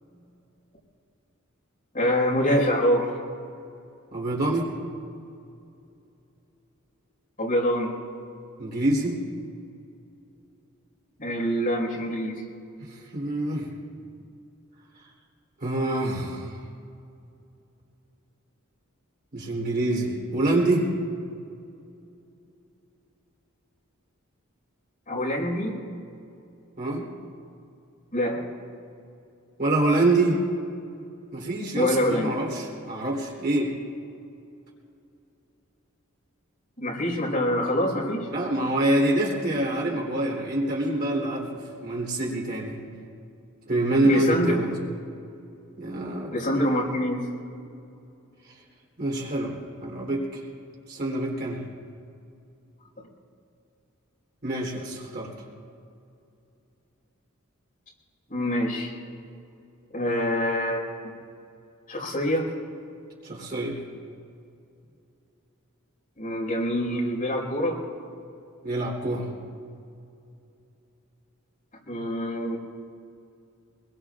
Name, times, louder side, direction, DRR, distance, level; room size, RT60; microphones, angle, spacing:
voice 1, 1.9-3.1 7.4-7.9 11.2-12.4 25.1-25.8 28.1-28.4 31.7-32.3 36.8-38.3 44.0-44.6 46.3-47.3 53.0-53.1 58.3-58.9 59.9-61.1 61.9-62.5 66.2-67.8 71.9-72.6, equal, 40° left, -2 dB, 5.0 m, -25 dB
voice 2, 4.1-4.7 8.6-9.2 12.8-13.7 15.6-16.5 19.3-20.9 26.8-27.1 29.6-30.4 31.3-33.7 38.3-42.8 43.7-44.7 45.8-46.8 49.0-50.4 50.9-51.6 54.4-55.3 63.2-63.8 68.6-69.3, right 1 dB, 45° right, -2 dB, 3.6 m, -26 dB
26.0 x 22.0 x 2.5 m, 2.6 s
head